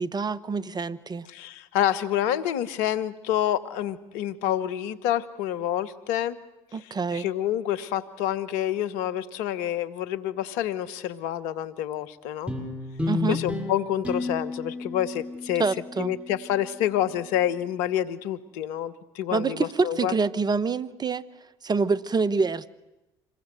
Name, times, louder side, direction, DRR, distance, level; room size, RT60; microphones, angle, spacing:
voice 1, 0.0-1.3 6.7-7.3 13.1-13.4 15.6-16.1 19.3-21.2 21.6-22.7, right 4 dB, 30° right, 15 dB, 1.2 m, -26 dB
voice 2, 1.3-6.4 7.1-12.5 13.3-15.6 16.0-20.1, left 11 dB, 75° left, 13 dB, 1.2 m, -28 dB
sound 1, 12.5-17.1, left 3 dB, 10° right, 6.8 m, -33 dB
26.5 x 21.5 x 7.8 m, 1.0 s
hypercardioid pair, 60°, 13 cm